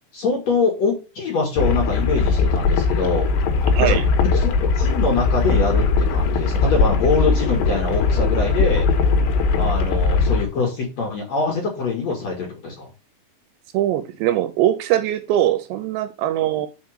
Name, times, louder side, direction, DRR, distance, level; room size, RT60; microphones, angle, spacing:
voice 1, 0.1-3.3 3.8-4.0 4.3-8.9 9.6-12.9, left 4 dB, 50° left, 2.4 m, -23 dB
sound 1, 1.6-10.4, left 4 dB, 75° left, 3.2 m, -19 dB
voice 2, 13.7-16.7, right 12 dB, 80° right, 2.7 m, -21 dB
6.0 x 5.2 x 6.4 m
omnidirectional pair, 5.4 m